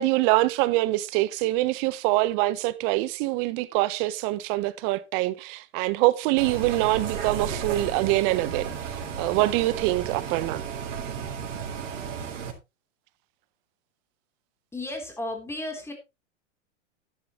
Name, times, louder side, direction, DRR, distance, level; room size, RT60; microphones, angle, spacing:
voice 1, 0.0-8.7 9.2-10.6, right 18 dB, 45° right, 1.1 m, -24 dB
Bus, 6.4-12.5, right 6 dB, 80° right, 3.5 m, -33 dB
voice 2, 14.7-15.9, left 1 dB, 5° left, 3.6 m, -34 dB
11.0 x 11.0 x 3.1 m
hypercardioid pair, 120°, 37 cm